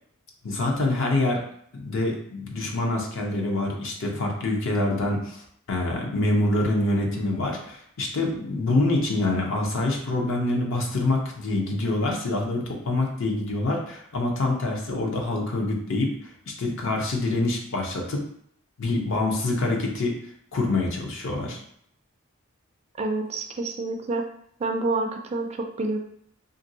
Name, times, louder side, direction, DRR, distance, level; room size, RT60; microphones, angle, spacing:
voice 1, 0.4-1.4 1.7-5.4 5.7-16.1 16.5-18.2 18.8-20.2 20.5-21.6, left 2 dB, 65° left, 0 dB, 0.7 m, -26 dB
voice 2, 23.0-24.2 24.6-26.0, right 2 dB, 30° right, 4 dB, 0.3 m, -28 dB
2.9 x 2.5 x 2.7 m, 0.68 s
head